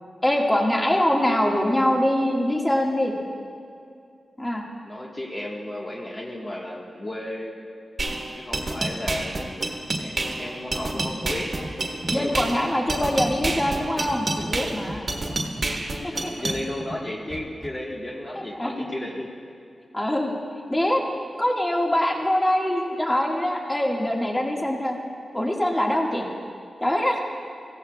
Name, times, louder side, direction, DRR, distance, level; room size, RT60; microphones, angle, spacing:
voice 1, 0.2-3.2 4.4-4.6 12.1-15.1 16.0-16.3 18.6-18.9 19.9-20.3 20.7-21.0 21.4-25.0 25.3-26.3 26.8-27.2, left 1 dB, 20° left, -1 dB, 1.7 m, -23 dB
voice 2, 4.8-7.5 8.3-9.6 10.0-11.6 12.0-12.4 16.1-19.3, left 1 dB, 40° left, -3 dB, 1.4 m, -34 dB
sound 1, 8.0-16.6, right 2 dB, 50° right, 1.4 m, -28 dB
Scratching (performance technique), 11.2-11.3 11.5-11.8 12.0-12.4 13.1-13.7 14.1-14.5 14.8-15.0 15.3-15.7 16.4-17.0 17.3-17.7, right 1 dB, 35° right, 1.6 m, -37 dB
16.0 x 14.5 x 2.3 m, 2.3 s
cardioid pair, 50°, 0 cm